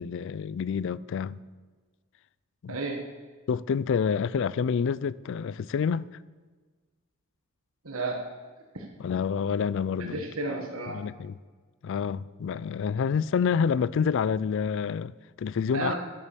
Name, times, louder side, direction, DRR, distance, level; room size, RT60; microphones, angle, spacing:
voice 1, 0.0-1.4 2.6-2.8 3.5-6.1 9.0-10.2 10.9-11.3 11.8-15.9, left 6 dB, 55° left, 0.3 m, -28 dB
voice 2, 2.7-3.0 7.8-8.3 8.7-8.9 10.0-11.0 15.7-15.9, right 2 dB, 65° right, 1.3 m, -32 dB
10.5 x 8.5 x 6.8 m
head